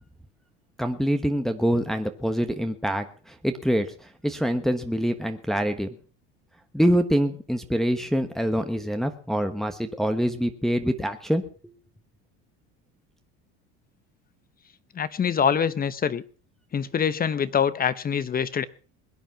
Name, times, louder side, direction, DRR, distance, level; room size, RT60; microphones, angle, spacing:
voice 1, 0.8-5.9 6.7-11.4, equal, ahead, 6 dB, 1.2 m, -25 dB
voice 2, 14.9-16.2 16.7-18.7, left 7 dB, 25° left, 16 dB, 1.0 m, -24 dB
21.5 x 9.0 x 5.8 m, 0.40 s
supercardioid pair, 115°, 33 cm